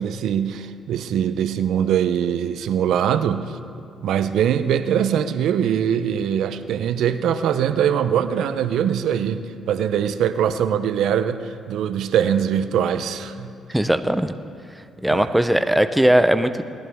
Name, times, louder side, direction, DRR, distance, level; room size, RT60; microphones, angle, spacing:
voice 1, 0.0-3.6 4.0-13.5 15.1-15.4, right 9 dB, 80° right, 11 dB, 0.6 m, -22 dB
voice 2, 13.7-14.3 15.0-16.6, right 1 dB, 5° right, 10 dB, 0.6 m, -18 dB
19.5 x 14.0 x 3.6 m, 2.3 s
cardioid pair, 90°, 0 cm